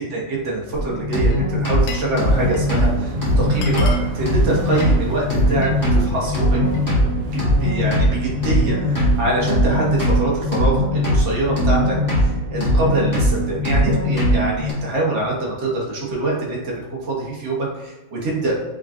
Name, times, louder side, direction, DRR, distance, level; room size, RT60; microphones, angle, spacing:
voice 1, 0.0-6.6 7.3-18.6, right 2 dB, 50° right, -3 dB, 0.9 m, -24 dB
sound 1, 0.7-14.7, equal, 15° left, 0.8 m, -20 dB
Glass, 1.2-2.2 2.4-2.8 3.2-3.3 3.5-5.8 6.1-6.9, left 5 dB, 80° left, 0.8 m, -37 dB
sound 2, 2.2-10.0, right 3 dB, 75° right, 1.0 m, -31 dB
3.7 x 3.6 x 2.4 m, 1.2 s
omnidirectional pair, 2.2 m